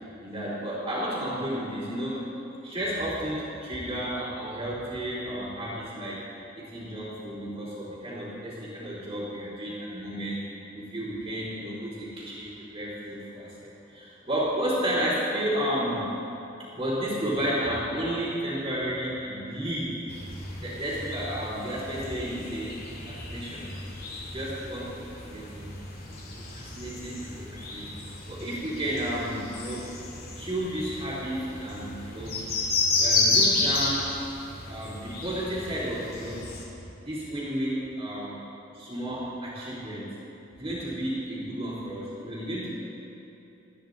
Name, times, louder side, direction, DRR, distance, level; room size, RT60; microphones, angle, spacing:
voice 1, 0.2-2.3 2.6-6.2 6.6-10.4 10.7-16.1 16.7-20.0 20.6-23.7 24.3-25.7 26.4-30.0 30.4-32.4 33.0-34.1 34.7-36.4 37.0-38.4 38.7-40.2 40.5-42.7, equal, 25° right, -12 dB, 3.3 m, -32 dB
sound 1, 20.1-36.6, left 3 dB, 50° left, 3.0 m, -32 dB
28.5 x 10.0 x 4.0 m, 3.0 s
head